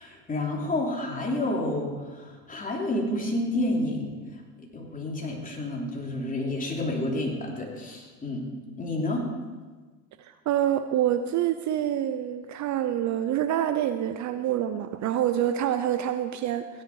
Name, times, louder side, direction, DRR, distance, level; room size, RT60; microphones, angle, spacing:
voice 1, 0.0-4.4 4.7-8.4 8.8-9.2, left 1 dB, 15° left, -1 dB, 3.1 m, -30 dB
voice 2, 10.2-16.8, right 11 dB, 35° right, 10 dB, 0.7 m, -27 dB
16.0 x 10.0 x 4.8 m, 1.4 s
hypercardioid pair, 100°, 49 cm